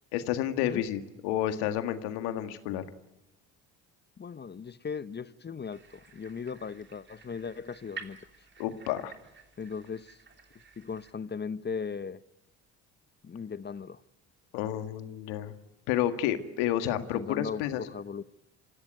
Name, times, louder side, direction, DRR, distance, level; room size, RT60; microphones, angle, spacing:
voice 1, 0.1-2.8 8.6-9.1 14.5-15.5 15.9-17.8, left 11 dB, 80° left, 1.9 m, -30 dB
voice 2, 4.2-8.2 9.6-10.2 10.8-12.2 13.2-14.0 17.0-18.2, left 6 dB, 25° left, 0.8 m, -38 dB
sound 1, 5.7-11.1, right 5 dB, 30° right, 3.3 m, -50 dB
25.5 x 16.0 x 9.3 m
supercardioid pair, 70°, 39 cm